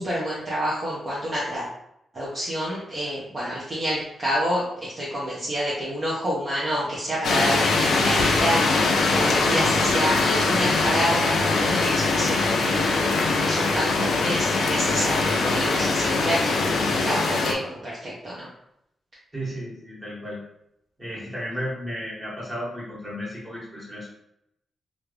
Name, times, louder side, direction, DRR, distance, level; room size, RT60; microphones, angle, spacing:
voice 1, 0.0-1.7 2.1-18.5, equal, 35° right, -7 dB, 0.8 m, -28 dB
sound 1, 7.2-17.5, left 3 dB, 90° left, 0.5 m, -22 dB
voice 2, 19.3-20.4 21.0-24.1, equal, 20° right, -7 dB, 1.5 m, -33 dB
3.1 x 2.5 x 3.2 m, 0.79 s
wide cardioid pair, 130°, 0 cm